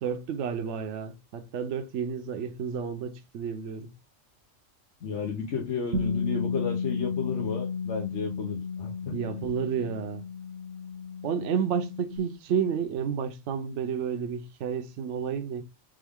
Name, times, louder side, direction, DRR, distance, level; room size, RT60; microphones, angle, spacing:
voice 1, 0.0-3.9 9.1-10.2 11.2-15.6, right 7 dB, 70° right, 0.9 m, -31 dB
voice 2, 5.0-9.2, left 5 dB, 65° left, 1.2 m, -33 dB
Bass guitar, 5.9-12.2, left 5 dB, 45° right, 0.7 m, -33 dB
3.6 x 3.6 x 3.5 m
omnidirectional pair, 1.3 m